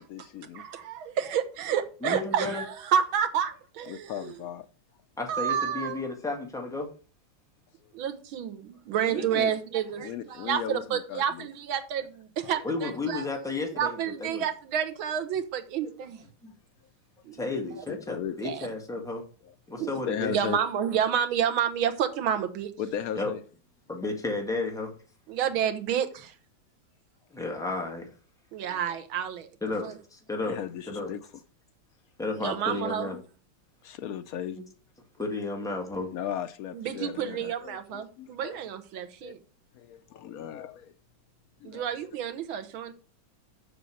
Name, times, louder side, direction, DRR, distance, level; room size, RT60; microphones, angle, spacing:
voice 1, 0.0-0.6 3.9-4.7 9.1-9.5 10.0-11.5 12.4-12.5 18.1-18.4 19.7-20.6 22.8-23.4 28.7-29.0 30.4-31.3 33.8-34.6 36.1-38.6 39.2-39.3 39.7-40.9 41.6-41.9, left 9 dB, 85° left, 0.7 m, -37 dB
voice 2, 0.5-4.3 5.3-6.0 7.9-13.3 13.7-16.2 17.3-17.4 17.8-17.9 18.4-18.7 19.8-19.9 20.3-22.7 25.3-26.3 28.5-29.5 29.8-30.0 32.3-33.1 36.7-39.4 41.6-42.9, right 8 dB, 85° right, 1.8 m, -29 dB
voice 3, 2.0-2.6 5.2-6.9 12.6-14.4 16.4-16.5 17.4-19.2 19.7-20.3 23.1-23.3 23.9-24.9 27.3-28.1 29.6-30.6 30.9-31.1 32.2-33.2 34.6-34.7 35.2-36.1, left 3 dB, ahead, 1.6 m, -32 dB
6.7 x 6.3 x 6.3 m
omnidirectional pair, 2.2 m